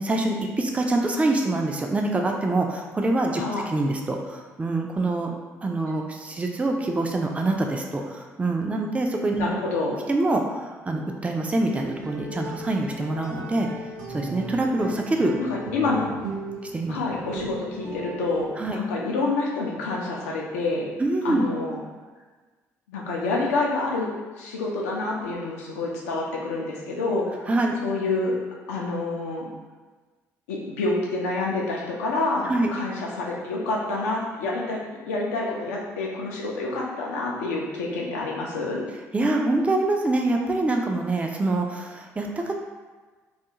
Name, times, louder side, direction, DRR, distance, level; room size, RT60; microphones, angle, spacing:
voice 1, 0.0-5.4 5.6-9.5 10.1-13.7 14.1-15.4 16.7-17.0 18.6-18.8 21.0-21.4 27.5-27.8 32.5-32.7 39.1-42.6, right 2 dB, 15° right, 2 dB, 0.3 m, -25 dB
voice 2, 3.4-3.7 9.4-10.0 15.5-16.2 16.9-20.9 21.2-21.8 22.9-24.1 24.4-27.5 27.8-28.4 28.7-29.5 30.5-34.8 35.1-38.8, left 3 dB, 80° left, -2 dB, 0.5 m, -27 dB
sound 1, 11.6-18.5, right 1 dB, 70° right, 0.5 m, -37 dB
2.4 x 2.3 x 2.8 m, 1.3 s
figure-of-eight pair, 45°, 8 cm